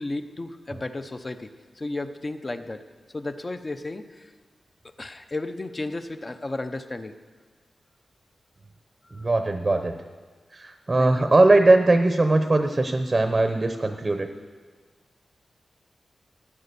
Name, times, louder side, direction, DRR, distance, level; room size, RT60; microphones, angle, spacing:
voice 1, 0.0-1.5 1.8-2.8 3.1-4.3 5.0-7.2 9.0-9.3 11.0-11.1, left 2 dB, 25° left, 9 dB, 0.7 m, -33 dB
voice 2, 9.1-9.9 10.5-14.3, right 2 dB, 25° right, 6 dB, 0.8 m, -20 dB
13.5 x 9.8 x 6.9 m, 1.5 s
wide cardioid pair, 140°, 0 cm